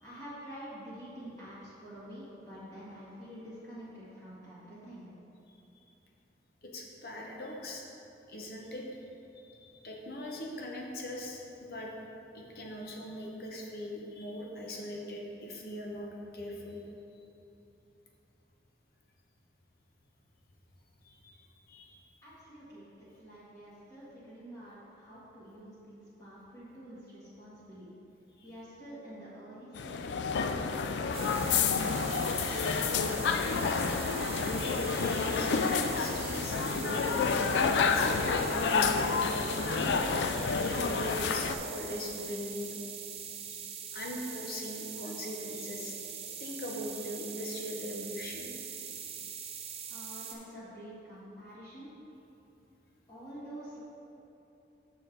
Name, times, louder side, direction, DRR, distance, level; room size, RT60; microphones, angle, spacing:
voice 1, 0.0-5.1 22.2-27.9 28.4-32.3 49.9-51.9 53.1-53.8, equal, 20° left, -11 dB, 1.6 m, -48 dB
voice 2, 6.6-7.8 8.3-8.9 9.3-11.9 12.3-16.1 16.3-16.8 17.1-17.2 21.0-22.0 28.4-28.5 34.2-37.3 37.8-39.9 40.4-42.7 43.4-48.5, left 1 dB, 55° left, -1 dB, 0.9 m, -41 dB
sound 1, 29.8-41.5, left 5 dB, 85° left, 0.4 m, -29 dB
sound 2, 31.1-50.3, right 7 dB, 35° right, 0.6 m, -42 dB
6.7 x 6.2 x 3.8 m, 2.9 s
head